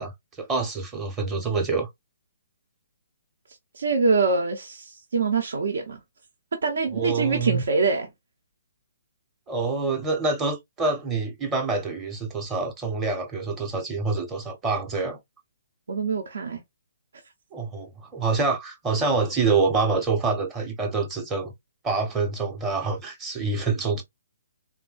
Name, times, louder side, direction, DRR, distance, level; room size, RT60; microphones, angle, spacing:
voice 1, 0.0-1.9 6.9-7.6 9.5-15.2 17.5-21.5 21.8-24.0, right 4 dB, 15° right, 0.7 m, -26 dB
voice 2, 3.7-6.0 6.6-8.1 15.9-16.6, right 4 dB, 75° right, 0.7 m, -24 dB
3.5 x 2.1 x 2.3 m
hypercardioid pair, 155°, 0 cm